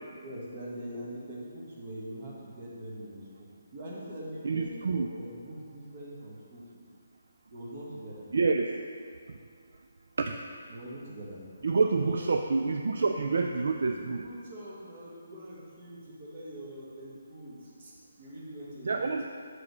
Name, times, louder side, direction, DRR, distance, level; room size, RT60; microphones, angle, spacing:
voice 1, 0.1-3.2 3.7-6.6 7.5-8.3 10.7-11.7 12.0-12.5 13.9-19.3, equal, 35° right, -4 dB, 1.4 m, -43 dB
voice 2, 4.4-5.1 8.3-8.7 10.2-10.4 11.6-14.2 18.8-19.2, right 4 dB, 65° right, 4 dB, 0.3 m, -27 dB
6.5 x 4.9 x 4.7 m, 2.2 s
hypercardioid pair, 170°, 0 cm